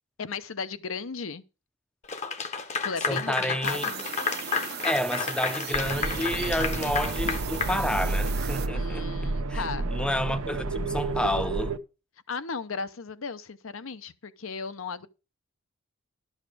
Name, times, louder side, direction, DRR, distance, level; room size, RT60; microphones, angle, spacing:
voice 1, 0.2-1.4 2.8-4.0 8.7-9.9 12.3-15.1, left 5 dB, 70° left, 0.7 m, -36 dB
Clapping / Applause, 2.1-8.4, left 5 dB, 30° left, 0.8 m, -31 dB
voice 2, 3.1-3.9 4.8-11.8, left 1 dB, 5° left, 0.5 m, -30 dB
sound 1, 3.6-8.7, right 9 dB, 50° right, 0.6 m, -38 dB
sound 2, 5.7-11.8, right 3 dB, 85° right, 0.7 m, -30 dB
11.5 x 6.5 x 4.9 m
head